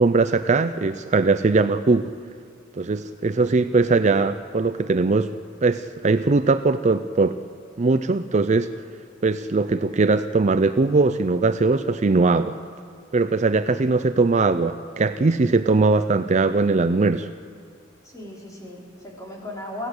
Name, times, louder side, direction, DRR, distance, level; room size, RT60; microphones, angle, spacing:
voice 1, 0.0-2.1 2.8-5.3 5.6-7.4 7.8-8.7 9.2-12.6 13.1-17.3, right 3 dB, 35° right, 11 dB, 0.5 m, -20 dB
voice 2, 18.0-19.9, left 1 dB, 20° left, -3 dB, 4.4 m, -36 dB
24.0 x 16.5 x 8.0 m, 2.1 s
head